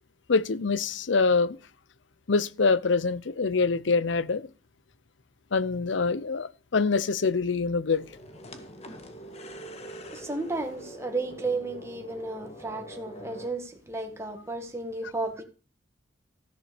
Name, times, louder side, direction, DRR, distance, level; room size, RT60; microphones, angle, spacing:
voice 1, 0.3-1.6 2.3-4.5 5.5-8.0, left 4 dB, 75° left, 0.7 m, -25 dB
sound 1, 7.9-13.5, equal, 35° left, 1.7 m, -44 dB
voice 2, 10.1-15.4, right 3 dB, 15° right, 1.7 m, -33 dB
14.0 x 7.0 x 6.8 m
head